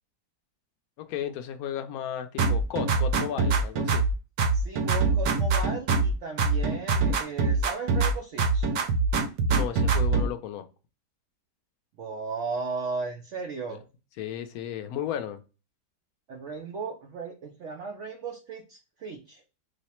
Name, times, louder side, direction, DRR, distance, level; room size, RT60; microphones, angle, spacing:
voice 1, 1.0-4.0 9.5-10.6 14.2-15.4, left 10 dB, 70° left, 8 dB, 0.9 m, -34 dB
sound 1, 2.4-4.1 4.4-6.1 6.4-8.1 8.4-10.3, right 4 dB, 70° right, 1.0 m, -24 dB
voice 2, 4.5-8.7 12.0-13.8 16.3-19.4, right 4 dB, 85° right, 3 dB, 0.6 m, -36 dB
3.1 x 2.0 x 4.2 m, 0.31 s
omnidirectional pair, 1.8 m